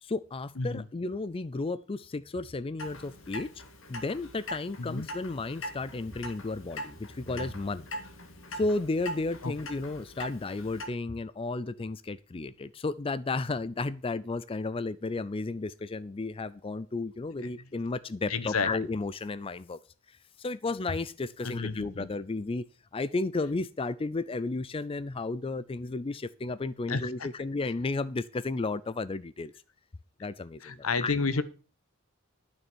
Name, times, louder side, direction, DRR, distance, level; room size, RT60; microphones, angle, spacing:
voice 1, 0.0-3.5 3.9-7.9 8.5-19.8 20.1-22.6 22.9-29.5 30.2-31.2, left 3 dB, 25° left, 16 dB, 0.4 m, -33 dB
Clock, 2.8-10.9, equal, 65° left, 2.1 m, -42 dB
voice 2, 18.3-18.7 21.4-22.1 26.9-27.3 30.6-31.4, left 4 dB, 85° left, 14 dB, 1.0 m, -30 dB
12.0 x 6.4 x 6.1 m, 0.36 s
head